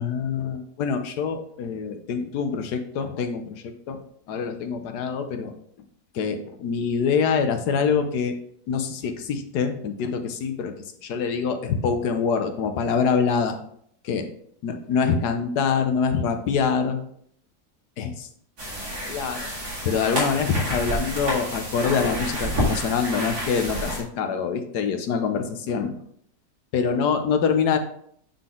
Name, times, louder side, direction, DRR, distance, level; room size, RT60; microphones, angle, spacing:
voice 1, 0.0-4.0 4.3-5.5 6.1-8.3 8.7-10.7 11.0-13.6 14.1-14.2 14.6-17.0 18.0-18.3 19.1-19.4 19.8-26.0 26.7-27.8, left 6 dB, 85° left, 7 dB, 1.4 m, -25 dB
sound 1, 18.6-24.0, equal, 75° right, 2.7 m, -29 dB
8.6 x 3.9 x 3.7 m, 0.65 s
omnidirectional pair, 1.7 m